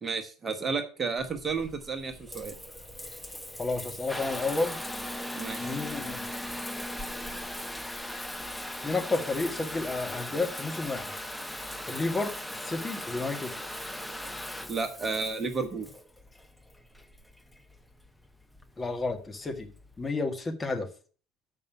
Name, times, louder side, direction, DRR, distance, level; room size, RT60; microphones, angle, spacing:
voice 1, 0.0-2.5 5.3-5.8 14.7-15.9, right 4 dB, 30° right, 7 dB, 1.1 m, -32 dB
Water tap faucet / Bathtub (filling or washing) / Trickle dribble, 1.2-20.1, left 1 dB, 5° left, 0.8 m, -39 dB
voice 2, 3.6-4.8 5.6-6.3 8.8-11.1 11.9-12.3 12.6-13.5 18.8-19.7 20.0-20.9, left 3 dB, 20° left, 5 dB, 1.5 m, -31 dB
6.7 x 5.3 x 6.9 m, 0.39 s
figure-of-eight pair, 65°, 0 cm